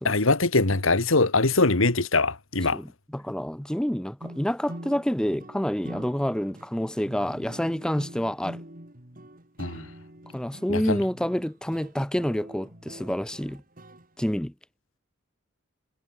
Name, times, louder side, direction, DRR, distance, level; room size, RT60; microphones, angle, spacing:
voice 1, 0.0-2.8 9.6-9.9 10.7-11.0, left 3 dB, 75° left, 2.2 m, -22 dB
voice 2, 2.7-8.6 10.3-13.6 14.2-14.5, equal, 5° left, 0.6 m, -28 dB
sound 1, 4.2-14.1, right 1 dB, 45° right, 3.8 m, -44 dB
head